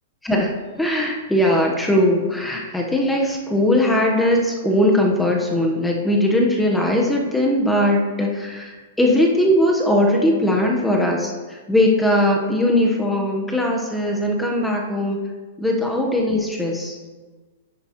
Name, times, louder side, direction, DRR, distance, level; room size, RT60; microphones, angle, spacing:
voice 1, 0.2-15.2 15.6-17.0, left 1 dB, 5° left, 0 dB, 1.1 m, -20 dB
10.5 x 9.5 x 3.1 m, 1.3 s
hypercardioid pair, 140°, 0 cm